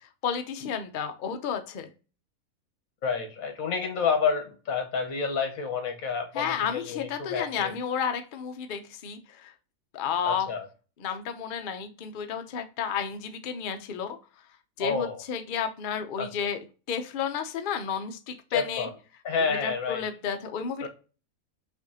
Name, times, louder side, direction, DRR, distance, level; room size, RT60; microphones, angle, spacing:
voice 1, 0.2-1.9 6.3-9.5 9.9-10.5 11.0-14.2 14.8-16.6 16.9-18.9 19.5-20.9, left 7 dB, 60° left, 7 dB, 0.5 m, -32 dB
voice 2, 3.0-7.7 10.3-10.6 14.8-15.2 16.2-16.3 18.5-18.9 19.2-20.0 20.8-20.9, left 5 dB, 80° left, 5 dB, 1.4 m, -29 dB
5.9 x 2.5 x 2.7 m, 0.35 s
omnidirectional pair, 1.5 m